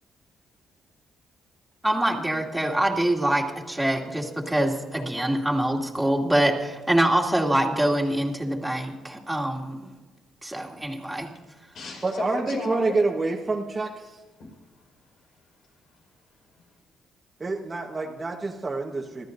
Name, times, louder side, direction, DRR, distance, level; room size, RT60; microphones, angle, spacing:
voice 1, 1.8-9.9 10.4-11.3, right 1 dB, 5° right, 0 dB, 2.5 m, -25 dB
voice 2, 11.3-13.0 14.4-16.8, left 3 dB, 70° left, 1 dB, 5.2 m, -38 dB
voice 3, 12.0-14.2 17.4-19.3, right 3 dB, 30° right, -2 dB, 1.3 m, -27 dB
26.5 x 13.5 x 2.7 m, 1.3 s
cardioid pair, 90°, 0 cm